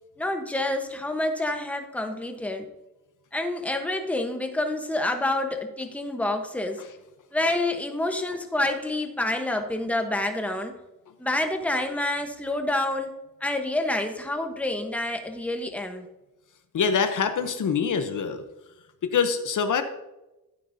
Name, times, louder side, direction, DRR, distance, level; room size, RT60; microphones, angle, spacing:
voice 1, 0.2-2.7 3.3-6.8 7.3-10.7 11.2-13.1 13.4-16.0, left 1 dB, 5° left, 5 dB, 1.0 m, -28 dB
voice 2, 16.7-18.4 19.0-19.8, left 6 dB, 60° left, 8 dB, 0.9 m, -24 dB
12.0 x 9.3 x 2.7 m, 0.99 s
cardioid pair, 90°, 35 cm